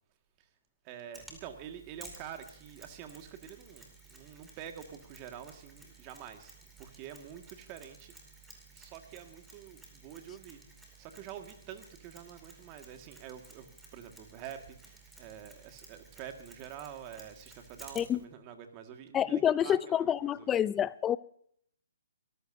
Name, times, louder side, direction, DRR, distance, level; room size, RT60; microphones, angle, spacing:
voice 1, 0.8-8.1 8.7-20.7, right 9 dB, 30° right, 1.8 m, -47 dB
Mechanisms, 1.1-18.2, right 3 dB, 5° right, 2.6 m, -55 dB
voice 2, 19.1-21.2, left 10 dB, 15° left, 0.4 m, -28 dB
24.0 x 14.5 x 2.7 m
hypercardioid pair, 140°, 0 cm